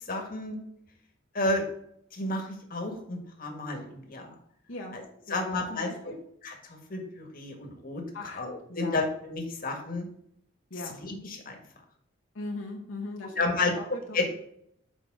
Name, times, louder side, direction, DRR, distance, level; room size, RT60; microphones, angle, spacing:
voice 1, 0.1-0.6 1.3-1.7 2.1-4.3 5.3-6.1 6.4-8.0 8.4-10.1 11.0-11.5 13.4-13.7 14.1-14.2, left 2 dB, 45° left, 3 dB, 1.6 m, -31 dB
voice 2, 4.7-5.0 5.3-6.2 8.1-9.1 10.7-11.1 12.3-14.3, left 2 dB, 75° left, 0 dB, 1.0 m, -39 dB
7.6 x 4.8 x 4.7 m, 0.71 s
head